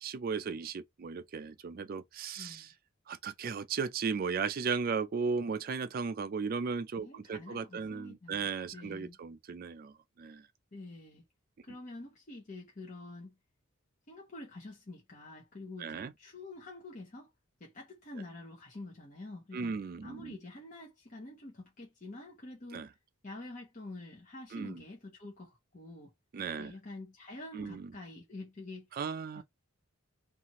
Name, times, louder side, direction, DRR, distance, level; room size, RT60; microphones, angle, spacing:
voice 1, 0.0-2.7 3.1-10.5 15.8-16.1 19.5-20.3 22.7-22.9 24.5-24.8 26.3-26.7 27.5-27.9 28.9-29.4, right 5 dB, 45° right, 0.3 m, -36 dB
voice 2, 2.4-2.7 7.0-9.2 10.7-11.2 11.6-13.4 14.1-17.3 17.6-19.7 20.0-22.8 23.2-26.1 26.6-28.9 29.4-29.5, left 2 dB, 35° left, 0.8 m, -47 dB
2.7 x 2.4 x 2.8 m
head